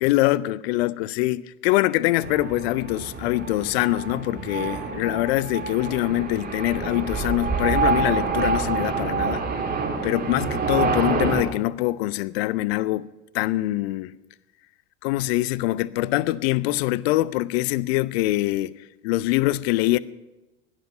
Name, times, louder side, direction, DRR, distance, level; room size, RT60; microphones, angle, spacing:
voice 1, 0.0-9.5 10.0-13.1 13.3-14.1 15.0-18.7 19.0-20.0, left 17 dB, 55° left, 0.7 m, -24 dB
sound 1, 2.2-11.4, right 5 dB, 25° right, 2.8 m, -27 dB
17.0 x 10.0 x 5.8 m
figure-of-eight pair, 75°, 37 cm